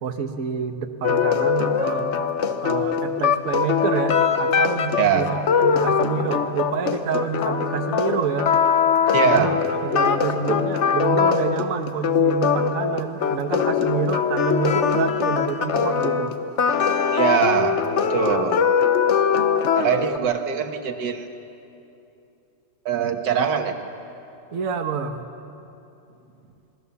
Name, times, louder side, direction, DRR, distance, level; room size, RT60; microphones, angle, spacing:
voice 1, 0.0-2.2 2.6-8.5 9.2-9.5 9.8-16.3 24.5-25.3, right 6 dB, 55° right, 5 dB, 1.4 m, -27 dB
sound 1, 1.0-20.2, left 7 dB, 50° left, 1.0 m, -22 dB
voice 2, 5.0-5.3 9.1-9.5 17.1-18.6 19.7-21.3 22.9-23.8, right 8 dB, 80° right, 6 dB, 1.9 m, -22 dB
26.5 x 19.5 x 7.0 m, 2.8 s
omnidirectional pair, 1.9 m